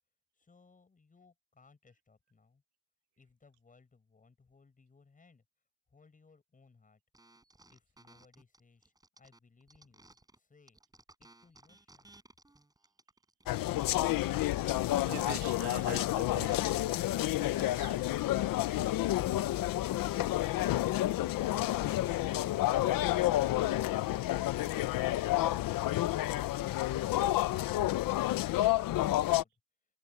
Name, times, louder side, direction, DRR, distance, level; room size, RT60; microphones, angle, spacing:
voice 1, 0.3-2.6 3.2-5.4 5.9-7.0 7.7-10.8 11.2-12.1, left 4 dB, 20° left, 7.7 m, -64 dB
sound 1, 7.1-10.4 10.7-16.5, right 2 dB, 10° right, 6.9 m, -61 dB
sound 2, 13.5-29.4, left 15 dB, 55° left, 0.7 m, -30 dB
voice 2, 15.1-16.8 17.3-18.2, right 15 dB, 75° right, 1.9 m, -45 dB
cardioid pair, 155°, 40 cm